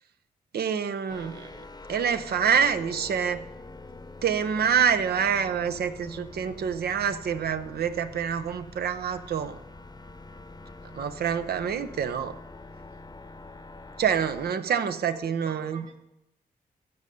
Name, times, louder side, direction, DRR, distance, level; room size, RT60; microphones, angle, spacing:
voice 1, 0.5-1.6 1.9-3.4 4.2-9.6 10.9-12.3 14.0-15.8, right 7 dB, 80° right, 10 dB, 0.8 m, -26 dB
sound 1, 1.1-14.5, left 2 dB, 25° left, 0.8 m, -45 dB
voice 2, 14.1-16.0, right 4 dB, 50° right, 4 dB, 2.5 m, -46 dB
15.0 x 5.5 x 6.4 m, 0.90 s
cardioid pair, 55°, 16 cm